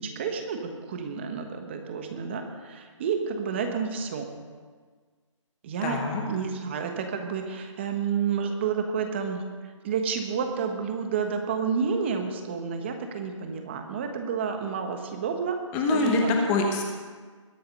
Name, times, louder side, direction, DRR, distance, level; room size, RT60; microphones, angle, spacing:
voice 1, 0.0-4.3 5.6-6.0 6.3-9.4 9.8-15.6 15.9-16.3, right 6 dB, 20° right, 5 dB, 1.2 m, -30 dB
voice 2, 5.8-6.2 15.7-16.9, left 3 dB, 10° left, 2 dB, 1.1 m, -24 dB
21.0 x 7.8 x 5.4 m, 1.5 s
hypercardioid pair, 170°, 17 cm